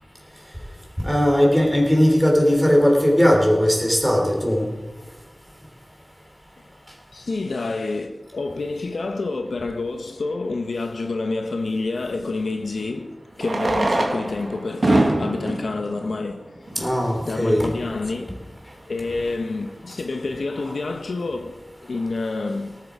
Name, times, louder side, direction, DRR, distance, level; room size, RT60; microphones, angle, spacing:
voice 1, 1.0-4.7 16.8-18.0, equal, ahead, 3.5 m, -18 dB
voice 2, 7.1-16.9 17.2-18.3 18.9-22.8, left 3 dB, 85° left, 1.0 m, -28 dB
Fireworks, 9.8-9.9 12.2-12.3 13.3-17.1 17.9-18.0 18.1-18.2 18.4-18.6 19.1-19.3, right 1 dB, 60° right, 1.9 m, -24 dB
18.0 x 7.8 x 5.0 m
wide cardioid pair, 85°, 0 cm